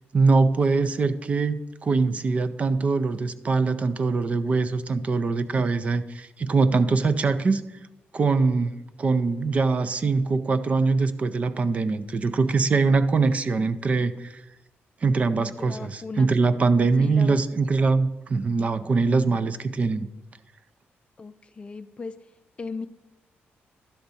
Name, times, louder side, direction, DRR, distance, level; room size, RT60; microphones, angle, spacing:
voice 1, 0.1-7.6 8.1-8.7 9.0-14.3 15.0-20.1, right 4 dB, 35° right, 0.4 m, -23 dB
voice 2, 15.4-16.3 17.0-17.6 21.2-22.1 22.6-22.9, left 4 dB, 25° left, 0.5 m, -37 dB
11.5 x 3.9 x 7.0 m
wide cardioid pair, 150°, 4 cm